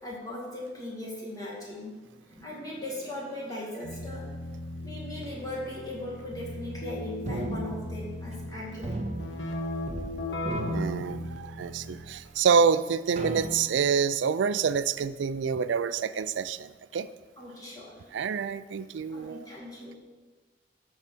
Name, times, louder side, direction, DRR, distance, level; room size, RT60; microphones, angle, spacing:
voice 1, 0.0-2.0 2.4-4.3 4.8-9.0 17.4-18.0 19.1-20.0, left 1 dB, 20° left, -5 dB, 2.2 m, -38 dB
sound 1, 1.8-6.4 6.7-7.0, right 2 dB, 5° right, 1.5 m, -56 dB
Keyboard (musical), 3.8-12.3, left 1 dB, 75° left, 1.2 m, -37 dB
sound 2, 7.3-8.5 8.8-10.1 10.4-11.7 12.3-12.4 13.2-14.0, right 1 dB, 40° right, 0.6 m, -36 dB
voice 2, 10.7-17.1 18.1-19.5, right 6 dB, 80° right, 14 dB, 0.4 m, -27 dB
13.0 x 4.8 x 4.4 m, 1.3 s
head